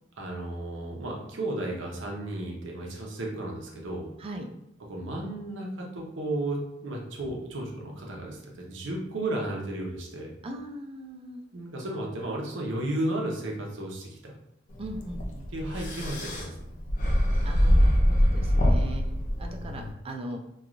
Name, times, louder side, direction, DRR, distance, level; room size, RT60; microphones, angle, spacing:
voice 1, 0.2-4.1 4.9-10.3 11.5-14.3 15.5-16.6, right 1 dB, 70° right, -1 dB, 0.6 m, -33 dB
voice 2, 10.4-11.4 14.8-15.5 17.4-19.0 19.4-20.4, right 1 dB, 30° right, 3 dB, 0.3 m, -39 dB
sound 1, 14.8-19.9, equal, 40° left, 0.4 m, -24 dB
3.0 x 2.3 x 2.4 m, 0.79 s
head